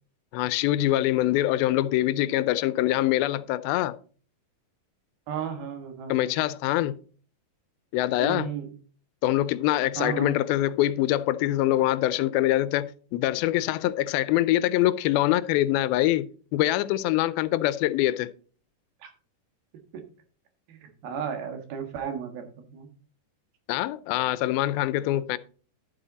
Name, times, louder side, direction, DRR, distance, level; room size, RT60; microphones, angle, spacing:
voice 1, 0.3-4.0 6.1-7.0 7.9-8.5 9.2-18.3 23.7-25.4, left 15 dB, 90° left, 2.5 m, -24 dB
voice 2, 5.3-6.4 8.2-8.7 10.0-10.3 19.0-19.1 19.9-20.0 20.7-22.9, right 8 dB, 90° right, 3.6 m, -34 dB
11.5 x 7.6 x 4.0 m
omnidirectional pair, 4.2 m